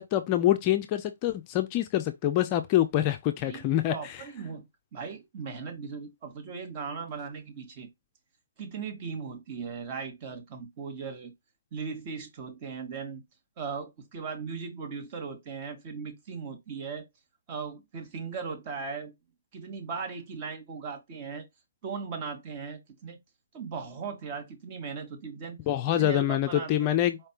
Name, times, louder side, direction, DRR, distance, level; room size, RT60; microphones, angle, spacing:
voice 1, 0.0-3.9 25.7-27.2, left 12 dB, 25° left, 0.4 m, -25 dB
voice 2, 3.9-4.6 4.9-7.9 8.6-11.3 11.7-13.2 13.6-17.1 17.5-19.1 19.5-21.5 21.8-23.2 23.5-25.6 25.9-26.9, right 5 dB, 30° right, 1.3 m, -38 dB
4.6 x 3.2 x 2.9 m
figure-of-eight pair, 135°, 0 cm